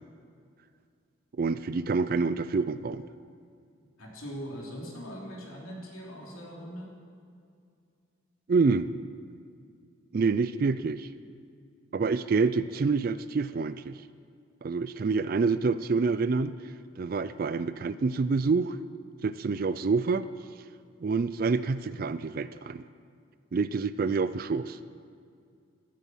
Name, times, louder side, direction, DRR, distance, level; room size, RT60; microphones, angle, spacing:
voice 1, 1.4-3.0 8.5-8.9 10.1-11.1 11.9-14.0 14.6-16.6 17.0-18.8 19.2-20.3 21.0-22.8 23.5-24.8, right 4 dB, 45° right, 14 dB, 0.3 m, -27 dB
voice 2, 4.0-6.9, equal, 90° left, -2 dB, 3.2 m, -41 dB
14.5 x 11.5 x 5.7 m, 2.4 s
head